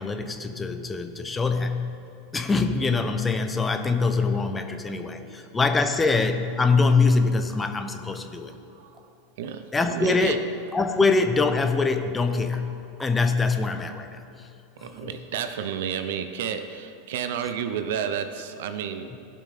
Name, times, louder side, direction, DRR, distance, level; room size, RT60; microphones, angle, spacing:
voice 1, 0.0-1.9 2.3-8.5 9.7-10.4 10.7-12.7 13.0-14.5 14.8-15.1, left 4 dB, 15° left, 7 dB, 0.8 m, -24 dB
voice 2, 4.9-5.6 8.6-9.1 9.4-10.4 14.8-19.2, right 8 dB, 70° right, 9 dB, 0.7 m, -32 dB
sound 1, 6.2-7.1 7.5-13.8, right 1 dB, 10° right, 1.1 m, -52 dB
16.5 x 5.7 x 4.2 m, 2.9 s
hypercardioid pair, 95°, 0 cm